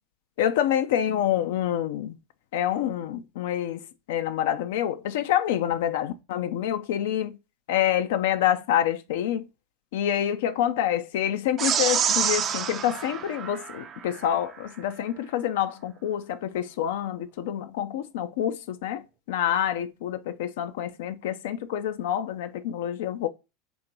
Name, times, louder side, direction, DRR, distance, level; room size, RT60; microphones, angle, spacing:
voice 1, 0.4-2.2 2.5-7.4 7.7-9.5 9.9-23.3, left 10 dB, 65° left, 0.4 m, -27 dB
sound 1, 11.6-14.2, right 8 dB, 35° right, 0.5 m, -27 dB
3.9 x 2.9 x 4.4 m
figure-of-eight pair, 80°, 0 cm